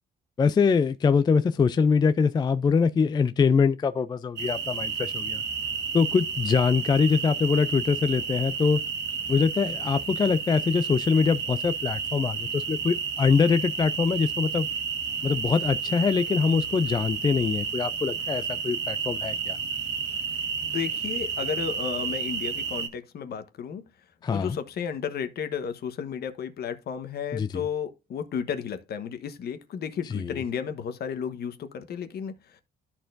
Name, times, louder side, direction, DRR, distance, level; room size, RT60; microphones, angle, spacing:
voice 1, 0.4-5.4 5.9-8.8 9.3-14.7 15.2-19.6 24.2-24.6 27.3-27.6 30.1-30.4, left 5 dB, 25° left, 0.4 m, -23 dB
sound 1, 4.4-22.9, right 6 dB, 70° right, 1.5 m, -31 dB
voice 2, 20.6-23.8 24.3-32.6, left 7 dB, 60° left, 1.1 m, -33 dB
12.5 x 4.4 x 2.5 m
cardioid pair, 130°, 18 cm